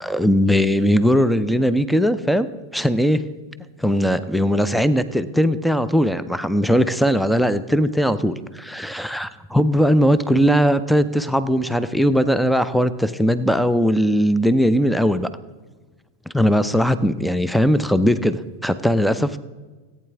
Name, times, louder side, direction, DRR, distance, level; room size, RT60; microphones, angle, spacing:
voice 1, 0.0-3.2 3.8-15.3 16.3-19.4, equal, ahead, 14 dB, 0.4 m, -19 dB
15.0 x 8.8 x 3.5 m, 1.3 s
figure-of-eight pair, 90°, 0 cm